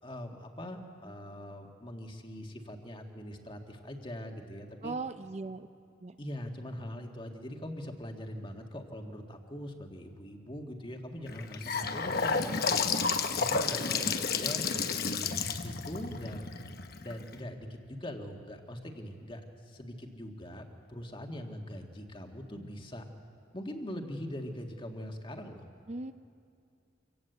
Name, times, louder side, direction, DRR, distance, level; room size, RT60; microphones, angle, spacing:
voice 1, 0.0-4.9 6.2-12.8 13.3-15.3 15.5-16.5 17.0-23.0 23.5-25.6, equal, 25° left, 3 dB, 1.7 m, -42 dB
voice 2, 4.8-5.7 6.0-6.2 25.9-26.1, right 3 dB, 35° right, 10 dB, 0.5 m, -38 dB
Gurgling / Sink (filling or washing) / Bathtub (filling or washing), 11.3-17.3, left 5 dB, 50° left, 1.1 m, -31 dB
26.5 x 17.5 x 8.0 m, 2.4 s
head